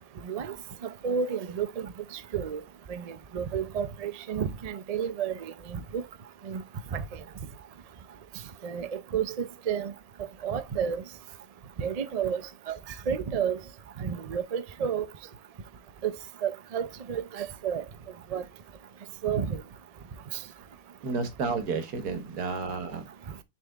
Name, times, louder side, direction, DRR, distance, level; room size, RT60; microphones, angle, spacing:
voice 1, 0.2-0.5 0.8-1.9 2.3-2.6 2.9-6.0 6.5-6.6 6.9-7.0 8.6-9.9 10.4-11.0 11.8-12.4 12.7-12.8 13.1-13.6 14.0-15.1 16.0-16.2 16.4-17.8 18.3-18.4 19.2-19.6, right 7 dB, 70° right, 0.3 m, -31 dB
voice 2, 21.0-23.1, right 4 dB, 90° right, 1.7 m, -31 dB
6.5 x 4.2 x 3.5 m
omnidirectional pair, 1.6 m